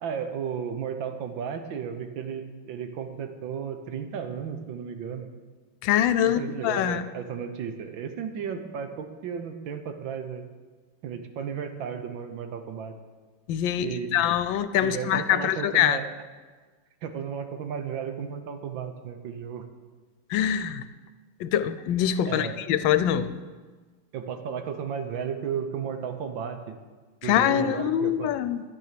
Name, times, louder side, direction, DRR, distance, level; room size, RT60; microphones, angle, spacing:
voice 1, 0.0-5.3 6.2-10.5 11.0-12.9 13.8-14.3 14.8-16.0 17.0-19.6 22.3-22.6 24.1-26.8 27.2-28.3, right 7 dB, 75° right, 7 dB, 1.7 m, -34 dB
voice 2, 5.8-7.0 13.5-16.0 20.3-20.8 21.4-23.3 27.2-28.6, left 10 dB, 80° left, 13 dB, 1.3 m, -24 dB
12.5 x 9.3 x 6.7 m, 1.4 s
omnidirectional pair, 2.1 m